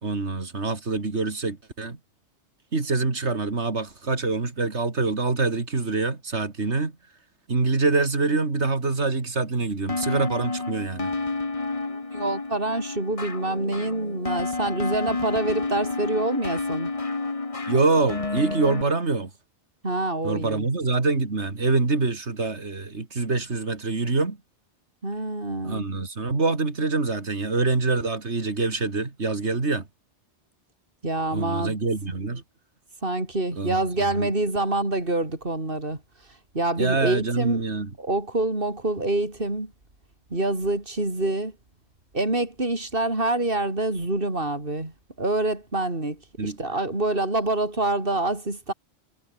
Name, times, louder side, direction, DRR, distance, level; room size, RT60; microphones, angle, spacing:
voice 1, 0.0-2.0 2.7-6.9 7.5-11.1 17.7-19.3 20.2-24.4 25.6-29.9 31.3-32.4 33.5-34.3 36.8-37.9 46.4-46.8, right 3 dB, 80° right, 3.2 m, -25 dB
sound 1, 9.9-18.8, left 3 dB, 30° left, 1.5 m, -30 dB
voice 2, 11.8-16.9 19.8-20.7 25.0-25.8 31.0-31.7 33.0-36.0 36.5-37.6 38.0-39.7 40.3-41.5 42.1-44.9 45.2-48.7, right 2 dB, 55° right, 5.0 m, -26 dB
omnidirectional pair, 1.1 m